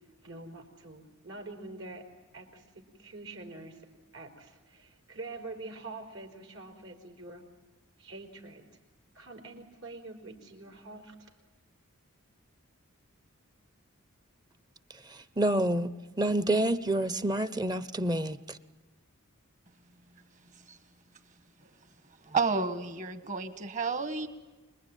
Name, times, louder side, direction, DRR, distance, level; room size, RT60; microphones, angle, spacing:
voice 1, 0.2-2.1 2.3-3.8 4.1-7.4 8.0-8.6 9.1-11.3, right 2 dB, 70° right, 4.6 m, -45 dB
voice 2, 15.1-18.6, right 1 dB, 20° right, 0.8 m, -28 dB
voice 3, 22.2-24.3, right 4 dB, 35° right, 1.6 m, -31 dB
26.5 x 21.0 x 9.2 m
head